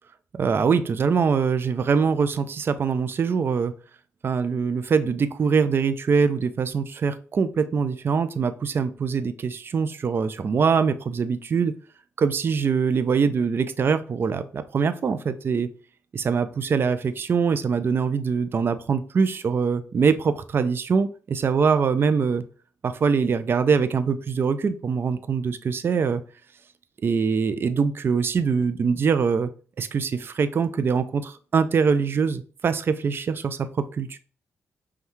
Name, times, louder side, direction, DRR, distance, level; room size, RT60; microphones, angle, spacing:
voice 1, 0.3-3.7 4.2-11.7 12.2-15.7 16.1-22.4 22.8-26.2 27.0-29.5 29.8-34.2, right 5 dB, 45° right, 11 dB, 0.4 m, -23 dB
5.4 x 2.3 x 3.1 m, 0.40 s
cardioid pair, 75°, 6 cm